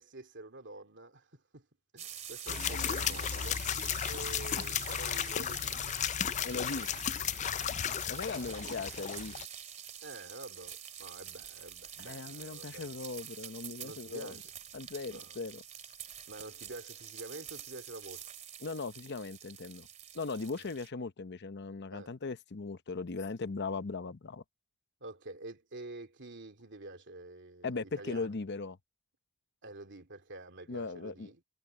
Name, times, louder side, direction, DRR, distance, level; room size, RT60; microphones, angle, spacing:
voice 1, 0.0-1.7 1.9-3.7 4.0-5.8 7.6-7.9 8.5-8.8 10.0-13.0 13.8-14.4 15.1-15.4 16.3-18.3 20.5-20.7 21.9-22.1 25.0-28.3 29.6-31.4, right 2 dB, 55° right, 2.9 m, -48 dB
sound 1, 2.0-20.9, right 9 dB, 35° right, 2.4 m, -47 dB
sound 2, 2.5-9.4, left 9 dB, 35° left, 0.3 m, -34 dB
voice 2, 6.4-6.9 8.1-9.4 12.0-14.4 14.7-15.6 18.6-19.9 20.1-24.4 27.6-28.8 30.7-31.4, left 4 dB, 50° left, 0.8 m, -38 dB
head